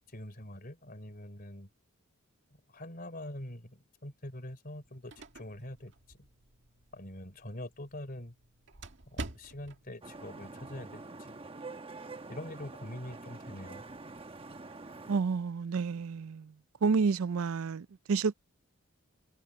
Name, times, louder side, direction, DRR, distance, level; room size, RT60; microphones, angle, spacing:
voice 1, 0.1-1.7 2.7-6.2 6.9-8.3 9.1-11.4 12.3-13.8, left 1 dB, 45° left, 4.1 m, -44 dB
sound 1, 4.7-9.9, right 2 dB, 60° right, 2.0 m, -47 dB
Vehicle horn car horn honking / Traffic noise roadway noise, 10.0-15.2, right 3 dB, 25° right, 1.0 m, -46 dB
voice 2, 15.1-16.5 16.8-18.3, right 5 dB, 75° right, 0.5 m, -30 dB
head